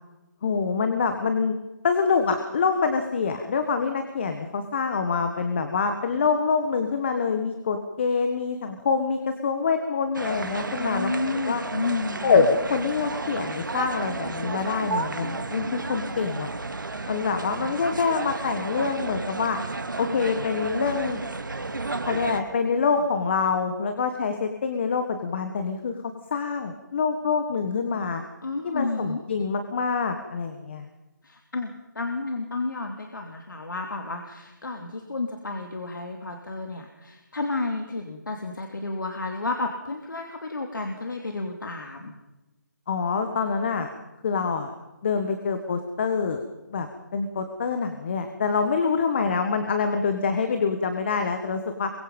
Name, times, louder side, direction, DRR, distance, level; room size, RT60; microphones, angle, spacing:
voice 1, 0.4-1.5 1.8-11.1 11.4-11.6 12.2-16.5 17.1-19.6 20.0-21.2 22.1-26.0 26.3-28.2 28.6-30.9 42.9-43.9 44.2-44.7 45.0-46.4 46.7-46.9 47.1-51.9, left 5 dB, 35° left, 7 dB, 1.6 m, -25 dB
sound 1, 10.1-22.4, right 3 dB, 80° right, 2.2 m, -32 dB
voice 2, 10.8-12.4 28.4-29.2 31.2-42.1, left 3 dB, 80° left, 3 dB, 2.9 m, -31 dB
23.5 x 23.0 x 5.5 m, 1.0 s
figure-of-eight pair, 165°, 10 cm